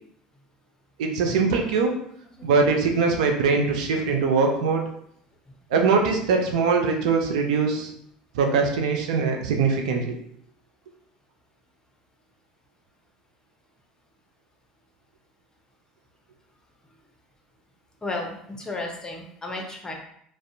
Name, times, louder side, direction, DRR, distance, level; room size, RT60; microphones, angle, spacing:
voice 1, 1.0-1.9 2.4-4.8 5.7-7.9 8.3-10.1, right 4 dB, 75° right, 3 dB, 0.4 m, -22 dB
voice 2, 18.0-19.9, left 2 dB, 20° left, 1 dB, 0.6 m, -33 dB
2.5 x 2.0 x 2.6 m, 0.70 s
hypercardioid pair, 70°, 4 cm